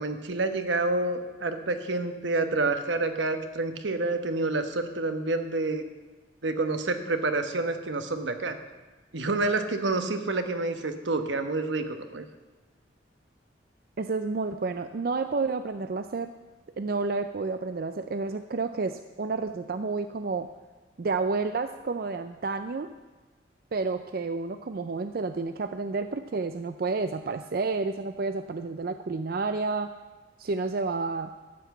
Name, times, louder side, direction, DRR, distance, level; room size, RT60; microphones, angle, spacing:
voice 1, 0.0-5.8 6.4-8.6 9.1-12.2, right 2 dB, 85° right, 7 dB, 1.1 m, -28 dB
voice 2, 14.0-16.3 16.8-20.5 21.0-22.9 23.7-29.9 30.4-31.3, right 3 dB, 55° right, 9 dB, 0.4 m, -30 dB
13.0 x 5.9 x 8.1 m, 1.3 s
head